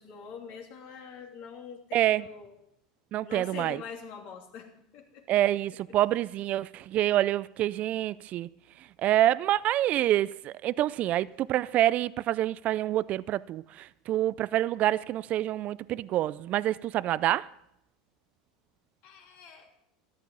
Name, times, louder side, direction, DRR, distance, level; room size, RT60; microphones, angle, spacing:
voice 1, 0.0-2.5 3.2-5.2 19.0-19.7, left 6 dB, 60° left, 3.0 m, -44 dB
voice 2, 1.9-2.2 3.1-3.8 5.3-8.5 9.0-17.5, right 13 dB, 45° right, 0.4 m, -27 dB
13.5 x 12.0 x 5.5 m
hypercardioid pair, 90°, 3 cm